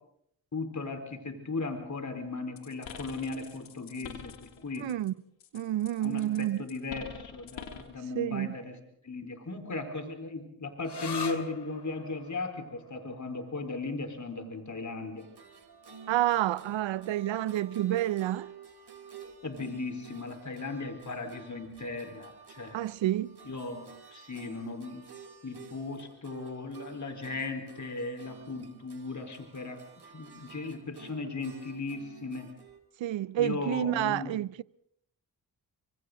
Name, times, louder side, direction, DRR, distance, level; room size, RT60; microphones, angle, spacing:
voice 1, 0.5-4.9 6.0-8.7 9.0-15.3 19.4-22.8 23.5-25.0 25.4-29.8 30.1-32.5 33.4-34.3, left 3 dB, 40° left, 4.5 m, -37 dB
sound 1, 2.6-5.1 5.4-8.0, left 8 dB, 80° left, 3.1 m, -45 dB
voice 2, 4.8-5.1 5.5-6.7 8.1-8.5 16.1-18.5 22.7-23.4 33.0-34.6, right 13 dB, 75° right, 0.8 m, -29 dB
sound 2, 10.8-18.2, left 5 dB, 60° left, 2.6 m, -45 dB
sound 3, 15.2-32.8, right 6 dB, 55° right, 4.3 m, -51 dB
29.0 x 25.0 x 4.0 m
supercardioid pair, 40°, 46 cm